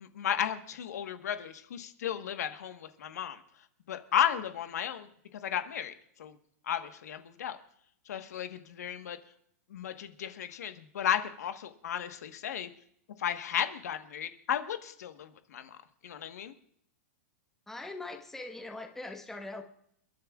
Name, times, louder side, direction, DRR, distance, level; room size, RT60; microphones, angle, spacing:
voice 1, 0.0-6.4 6.6-7.6 8.0-9.2 9.7-12.7 13.2-15.8 16.0-16.5, left 9 dB, 85° left, 8 dB, 1.3 m, -34 dB
voice 2, 17.7-19.6, left 2 dB, 5° left, 4 dB, 1.2 m, -41 dB
30.0 x 10.5 x 2.4 m, 0.68 s
supercardioid pair, 145°, 9 cm